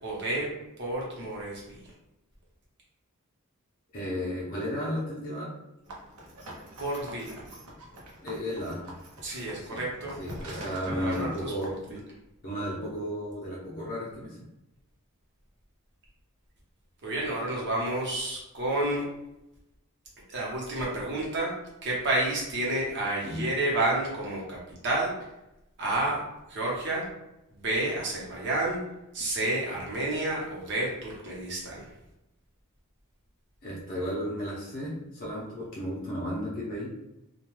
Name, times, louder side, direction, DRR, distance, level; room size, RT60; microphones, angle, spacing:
voice 1, 0.0-0.5 0.8-1.8 6.8-7.4 9.2-10.2 10.9-11.7 17.0-19.0 20.3-21.5 21.8-24.6 24.8-25.1 25.8-26.2 26.5-27.0 27.5-28.8 29.1-31.9, right 2 dB, 55° right, -3 dB, 0.9 m, -30 dB
voice 2, 3.9-5.5 8.2-8.8 9.6-9.8 10.2-12.0 12.4-14.4 23.2-23.5 33.6-36.9, equal, 40° left, -5 dB, 0.6 m, -34 dB
sound 1, 5.8-11.9, right 1 dB, 90° right, 0.7 m, -44 dB
2.2 x 2.2 x 3.1 m, 0.90 s
head